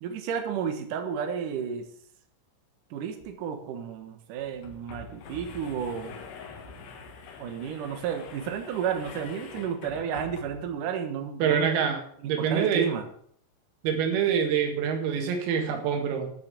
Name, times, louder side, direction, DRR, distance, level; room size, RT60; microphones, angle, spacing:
voice 1, 0.0-1.9 2.9-6.2 7.4-11.7 12.2-13.1, right 7 dB, 70° right, 6 dB, 2.0 m, -32 dB
sound 1, 3.2-3.3 3.6-3.7 4.4-10.8, left 4 dB, 60° left, 3.4 m, -45 dB
voice 2, 11.4-12.0 12.3-12.9 13.8-16.3, right 7 dB, 85° right, 4 dB, 4.6 m, -25 dB
11.5 x 6.5 x 8.2 m, 0.63 s
omnidirectional pair, 6.0 m